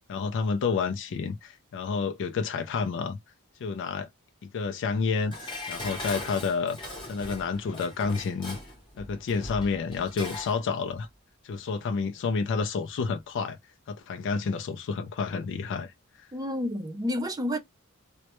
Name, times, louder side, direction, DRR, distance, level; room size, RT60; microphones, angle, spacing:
voice 1, 0.1-3.2 3.6-4.1 4.4-5.4 5.7-6.8 7.1-8.6 9.0-11.1 11.4-13.6 13.9-15.9 16.2-16.3, left 5 dB, 55° left, 0.4 m, -29 dB
Dishes pots and pans, 5.3-10.6 10.9-11.0, left 1 dB, 20° left, 0.8 m, -40 dB
voice 2, 16.3-17.6, left 1 dB, 15° right, 0.4 m, -30 dB
2.2 x 2.0 x 2.8 m
head